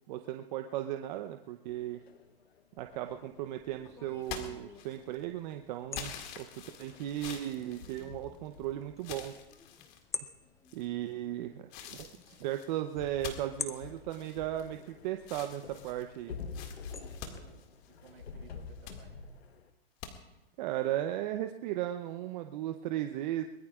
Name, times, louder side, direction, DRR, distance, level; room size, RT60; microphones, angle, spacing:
voice 1, 0.1-2.0 2.8-6.5 6.8-9.3 10.7-16.4 20.6-23.4, right 13 dB, 45° right, 7 dB, 0.8 m, -36 dB
sound 1, 1.7-5.4 5.8-5.9 6.0-6.1 6.5-10.5 10.9-11.1 11.5-19.7, left 5 dB, 85° left, 1.2 m, -49 dB
sound 2, 2.8-17.4, left 5 dB, 10° left, 0.5 m, -49 dB
sound 3, 4.2-5.2 5.9-8.6 9.0-10.0 10.6-11.1 11.7-14.9 15.2-18.2 18.6-19.0 20.0-20.1, left 8 dB, 40° left, 2.1 m, -46 dB
voice 2, 10.9-11.3 17.1-19.1, right 6 dB, 70° right, -3 dB, 6.7 m, -58 dB
23.0 x 20.0 x 2.4 m, 1.0 s
hypercardioid pair, 125°, 31 cm